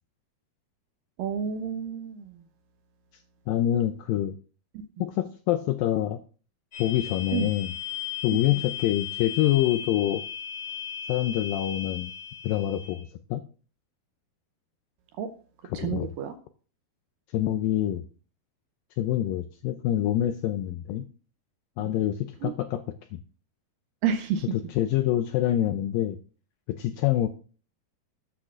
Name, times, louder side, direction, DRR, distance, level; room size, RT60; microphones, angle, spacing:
voice 1, 1.2-2.3 4.7-4.8 7.3-7.5 8.3-8.6 15.2-15.3 15.7-16.4 22.4-22.5 24.0-24.5, right 7 dB, 80° right, 8 dB, 2.1 m, -30 dB
voice 2, 3.5-4.4 5.0-6.2 6.8-7.7 8.2-10.2 11.1-12.1 12.4-13.4 15.6-16.1 17.3-18.1 19.0-21.1 21.8-22.8 23.1-23.2 24.7-26.2 26.7-27.3, left 12 dB, 85° left, 8 dB, 2.0 m, -26 dB
sound 1, 6.7-13.0, left 9 dB, 25° left, 3.6 m, -36 dB
13.5 x 8.6 x 2.5 m, 0.39 s
omnidirectional pair, 4.6 m